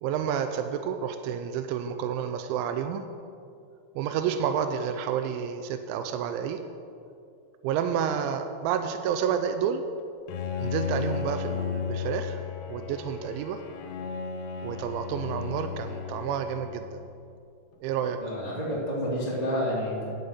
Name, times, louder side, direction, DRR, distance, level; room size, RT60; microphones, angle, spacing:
voice 1, 0.0-3.0 4.0-6.6 7.6-9.8 10.6-12.4 12.7-13.6 14.6-17.0 17.8-18.2, right 8 dB, 85° right, 7 dB, 2.7 m, -30 dB
Bowed string instrument, 10.3-17.4, left 7 dB, 85° left, 3.3 m, -34 dB
voice 2, 18.2-20.0, equal, 55° right, -8 dB, 0.4 m, -29 dB
11.5 x 7.9 x 5.7 m, 2.5 s
omnidirectional pair, 5.8 m